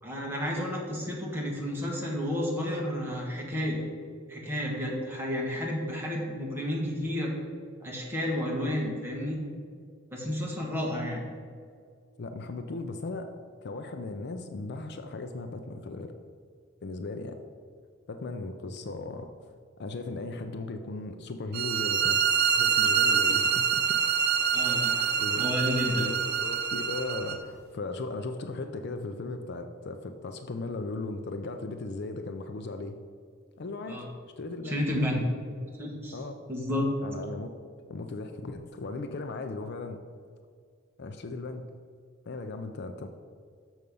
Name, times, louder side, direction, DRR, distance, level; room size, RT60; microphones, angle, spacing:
voice 1, 0.0-3.8 4.3-7.3 7.8-9.4 10.1-11.3 24.5-26.0 33.9-34.1 34.6-35.3 35.8-36.1 36.5-36.9, left 1 dB, 10° right, -3 dB, 1.5 m, -31 dB
voice 2, 12.2-13.3 13.6-16.1 16.8-17.4 18.1-19.3 19.8-22.2 22.6-24.0 24.6-24.8 25.2-25.5 25.9-33.0 33.6-34.0 34.4-34.8 36.1-36.4 37.0-37.5 37.9-40.0 41.0-41.6 42.3-43.1, left 3 dB, 50° left, 7 dB, 0.4 m, -37 dB
sound 1, 21.5-27.4, right 7 dB, 45° right, 0.5 m, -26 dB
6.7 x 6.3 x 5.3 m, 2.1 s
head